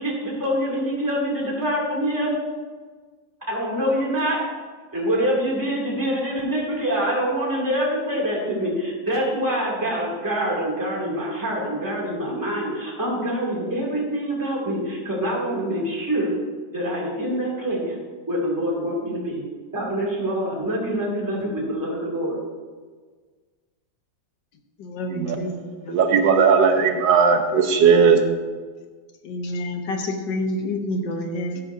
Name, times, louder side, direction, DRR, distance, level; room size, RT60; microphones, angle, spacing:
voice 1, 0.0-2.3 3.5-4.4 4.9-16.3 16.7-18.0 18.3-19.4 19.7-22.4, equal, 10° right, -4 dB, 2.4 m, -25 dB
voice 2, 24.8-26.0 29.2-31.6, left 1 dB, 80° left, 4 dB, 1.6 m, -28 dB
voice 3, 25.9-28.2, right 6 dB, 85° right, 5 dB, 1.7 m, -17 dB
13.0 x 10.5 x 2.7 m, 1.5 s
omnidirectional pair, 1.9 m